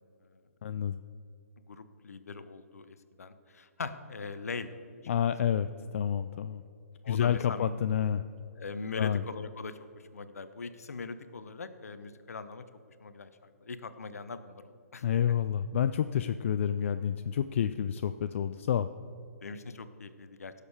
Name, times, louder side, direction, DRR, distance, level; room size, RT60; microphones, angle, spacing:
voice 1, 0.6-1.0 5.1-6.6 7.1-8.2 9.0-9.2 15.0-18.9, left 9 dB, 50° left, 11 dB, 0.3 m, -29 dB
voice 2, 1.6-4.8 7.0-7.8 8.6-15.1 19.4-20.5, left 4 dB, 70° left, 12 dB, 0.8 m, -41 dB
16.5 x 6.7 x 4.9 m, 2.6 s
figure-of-eight pair, 125°, 9 cm